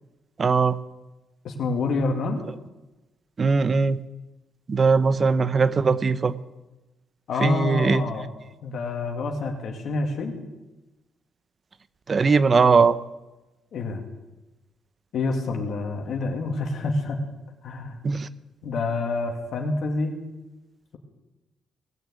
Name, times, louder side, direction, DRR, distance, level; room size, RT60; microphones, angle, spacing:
voice 1, 0.4-0.8 3.4-4.0 4.7-6.3 7.4-8.0 12.1-13.0 18.0-18.3, right 4 dB, 35° right, 15 dB, 0.7 m, -20 dB
voice 2, 1.4-2.4 7.3-8.3 8.6-10.4 13.7-14.0 15.1-17.2 17.6-18.0 18.6-20.2, left 3 dB, 65° left, 3 dB, 2.4 m, -27 dB
19.0 x 6.9 x 9.6 m, 1.1 s
cardioid pair, 90°, 0 cm